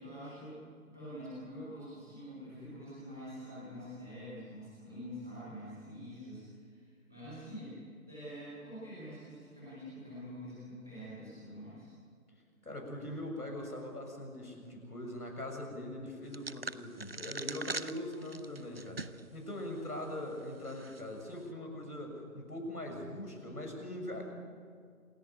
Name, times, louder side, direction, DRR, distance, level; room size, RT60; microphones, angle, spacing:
voice 1, 0.0-7.8 8.0-11.9, equal, ahead, -12 dB, 0.9 m, -46 dB
voice 2, 12.6-24.2, left 1 dB, 85° left, 2 dB, 7.0 m, -41 dB
sound 1, 16.3-19.3 19.7-19.8 20.6-21.0, right 3 dB, 40° right, 0.6 m, -42 dB
27.5 x 13.0 x 9.2 m, 2.1 s
figure-of-eight pair, 160°, 45 cm